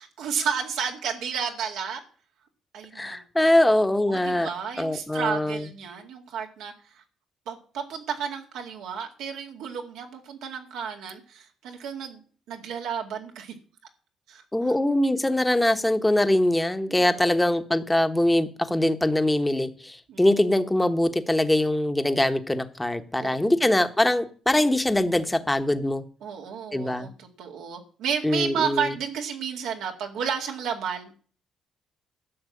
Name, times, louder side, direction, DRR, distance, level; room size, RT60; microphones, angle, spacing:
voice 1, 0.0-2.0 2.7-3.2 3.6-7.0 7.5-12.2 12.5-13.5 14.3-14.4 16.9-17.5 20.1-20.2 23.2-23.7 26.2-31.1, right 7 dB, 90° right, 1 dB, 2.2 m, -32 dB
voice 2, 2.9-4.5 4.8-5.7 14.5-26.0 26.7-27.1 28.2-28.9, left 1 dB, 10° left, 8 dB, 1.2 m, -23 dB
12.5 x 6.1 x 8.5 m, 0.42 s
cardioid pair, 90°, 0 cm